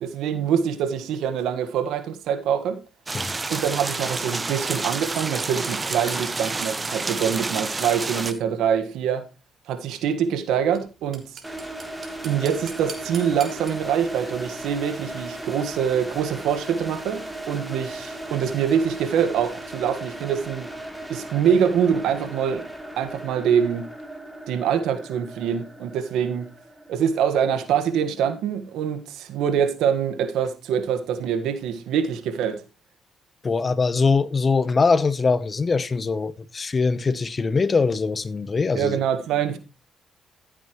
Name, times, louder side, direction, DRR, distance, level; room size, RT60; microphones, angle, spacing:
voice 1, 0.0-2.8 3.5-9.2 9.7-11.2 12.2-20.7 21.1-22.6 23.0-23.9 24.5-26.5 26.9-32.6 38.7-39.6, right 8 dB, 80° right, 1.6 m, -24 dB
sound 1, 3.1-8.3, right 3 dB, 30° right, 1.1 m, -29 dB
sound 2, 5.2-8.4 10.7-10.8 11.1-13.7, right 5 dB, 55° right, 3.5 m, -38 dB
sound 3, 11.4-28.3, right 1 dB, 10° right, 3.2 m, -37 dB
voice 2, 33.4-39.0, left 4 dB, 40° left, 1.0 m, -22 dB
15.0 x 8.5 x 3.1 m
supercardioid pair, 65°, 0 cm